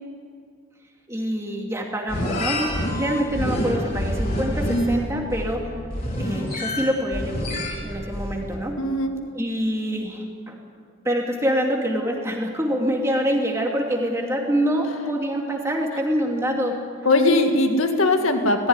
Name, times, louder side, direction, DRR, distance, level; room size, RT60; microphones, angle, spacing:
voice 1, 1.1-5.7 6.1-8.8 9.3-10.6 11.0-16.8 17.7-17.8, equal, 15° right, 0 dB, 2.6 m, -25 dB
sound 1, 2.1-8.6, equal, 45° left, 3.9 m, -27 dB
voice 2, 8.8-9.1 17.1-18.7, left 2 dB, 85° left, 5 dB, 2.0 m, -19 dB
19.0 x 15.0 x 9.8 m, 2.2 s
head